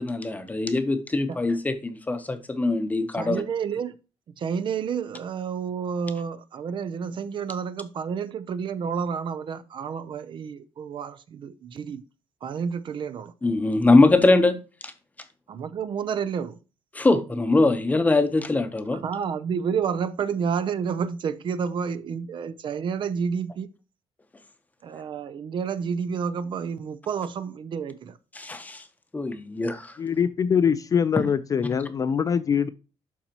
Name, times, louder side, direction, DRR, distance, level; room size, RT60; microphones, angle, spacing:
voice 1, 0.0-3.4 13.4-14.6 14.8-14.9 16.9-19.0 28.3-28.8 29.1-29.9, left 2 dB, 15° left, 0.8 m, -22 dB
voice 2, 3.1-4.0 4.4-12.0 12.4-13.3 15.5-16.6 18.9-23.7 24.8-28.2, right 6 dB, 45° right, 0.6 m, -30 dB
voice 3, 30.0-32.7, left 7 dB, 30° left, 0.3 m, -23 dB
12.0 x 4.2 x 2.9 m
cardioid pair, 155°, 11 cm